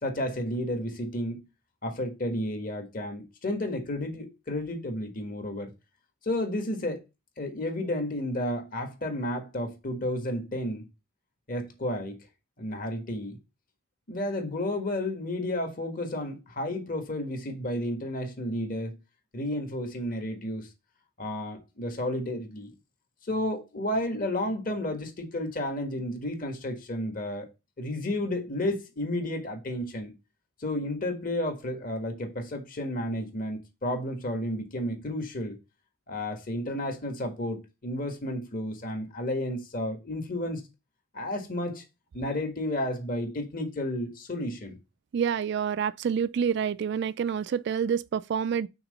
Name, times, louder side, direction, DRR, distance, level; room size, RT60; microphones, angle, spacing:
voice 1, 0.0-1.5 1.8-5.7 6.2-7.0 7.4-10.8 11.5-12.2 12.6-13.4 14.1-19.0 19.3-20.7 21.2-22.7 23.2-27.5 27.8-30.1 30.6-35.6 36.1-40.6 41.1-41.8 42.1-44.7, left 1 dB, 45° left, 1.5 m, -32 dB
voice 2, 45.1-48.7, right 7 dB, 55° right, 0.3 m, -28 dB
5.8 x 3.8 x 5.3 m
head